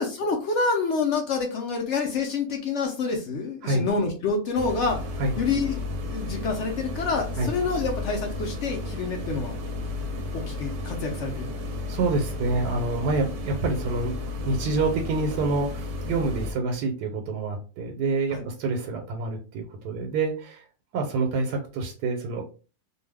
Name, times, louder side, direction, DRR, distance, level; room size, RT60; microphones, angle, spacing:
voice 1, 0.0-5.0 5.4-5.8 6.1-9.5 10.3-11.7 18.3-18.4, left 4 dB, 65° left, 2 dB, 0.7 m, -27 dB
sound 1, 4.6-16.5, left 2 dB, 65° right, 0.8 m, -33 dB
voice 2, 11.9-14.1 14.4-20.6 20.9-22.4, right 3 dB, 85° right, 3 dB, 1.1 m, -27 dB
2.6 x 2.2 x 3.3 m, 0.35 s
omnidirectional pair, 1.7 m